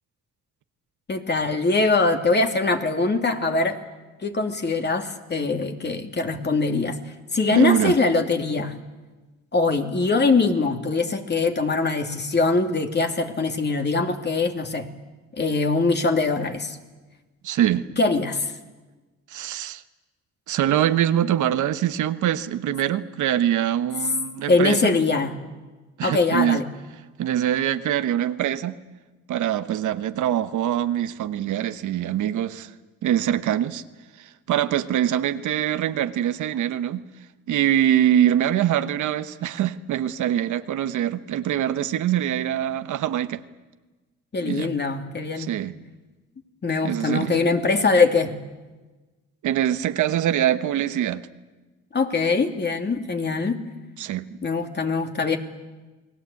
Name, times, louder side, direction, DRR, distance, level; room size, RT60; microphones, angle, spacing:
voice 1, 1.1-3.8 4.2-7.0 7.3-8.7 9.5-14.9 15.3-16.8 18.0-18.5 24.5-25.4 26.0-26.6 44.3-45.5 46.6-48.3 51.9-53.6 54.4-55.4, left 3 dB, 35° left, 2.7 m, -22 dB
voice 2, 7.5-8.0 17.4-17.9 19.3-19.8 20.5-25.0 26.0-26.6 27.2-28.8 29.3-32.7 33.0-33.8 34.2-37.0 37.5-43.4 44.4-44.7 45.4-45.7 46.8-47.4 49.4-51.2 54.0-54.4, right 11 dB, 75° right, 1.2 m, -23 dB
29.0 x 20.0 x 8.5 m
cardioid pair, 90°, 30 cm